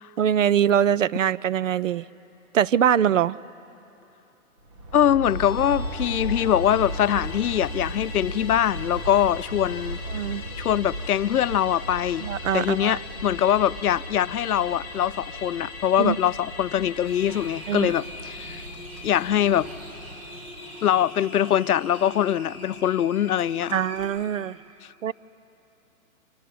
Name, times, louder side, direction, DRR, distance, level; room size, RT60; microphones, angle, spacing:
voice 1, 0.2-2.1 2.5-3.4 10.1-10.4 12.2-13.0 16.0-16.2 17.7-17.9 23.7-24.6 25.0-25.1, right 9 dB, 60° right, 0.6 m, -23 dB
Aircraft, 4.6-20.7, right 1 dB, 20° right, 1.2 m, -37 dB
voice 2, 4.9-10.0 10.6-12.3 12.5-18.7 19.0-19.7 20.8-23.8, left 10 dB, 85° left, 0.7 m, -23 dB
Musical instrument, 5.2-19.9 20.2-20.3, left 4 dB, 5° left, 3.2 m, -42 dB
sound 1, 17.0-24.1, left 1 dB, 45° right, 7.0 m, -41 dB
29.0 x 26.0 x 7.7 m
hypercardioid pair, 170°, 43 cm